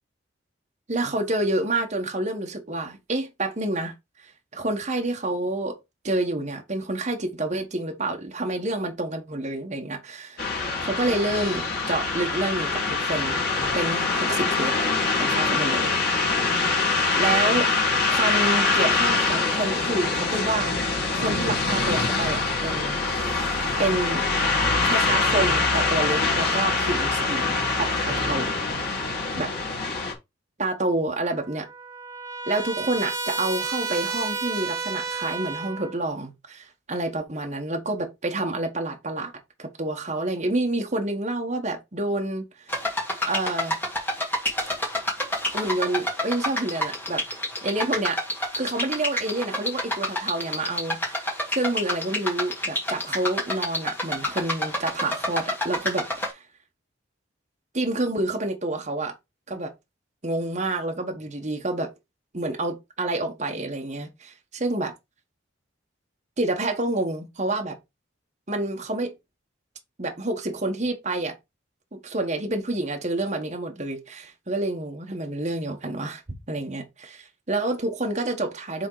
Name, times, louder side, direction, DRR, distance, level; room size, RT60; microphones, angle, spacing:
voice 1, 0.9-3.9 4.5-5.8 6.0-10.4 10.8-13.3 13.7-14.7 15.2-16.4 17.2-17.7 18.1-20.7 21.1-23.0 23.8-24.2 24.8-28.8 29.4-29.5 30.6-31.6 32.5-39.3 39.6-42.4 42.7-42.9 43.2-43.8 45.5-47.2 47.6-48.2 48.5-56.4 57.7-59.1 59.5-59.7 60.2-61.9 62.3-64.9 66.4-67.7 68.5-69.1 70.0-71.3 71.9-76.2 76.5-78.9, right 2 dB, 35° right, 1.2 m, -28 dB
sound 1, 10.4-30.1, left 3 dB, 50° left, 2.2 m, -24 dB
Trumpet, 31.2-36.0, right 4 dB, 15° right, 1.3 m, -31 dB
sound 2, 42.7-56.3, left 1 dB, 10° left, 1.9 m, -28 dB
6.3 x 3.7 x 4.7 m
head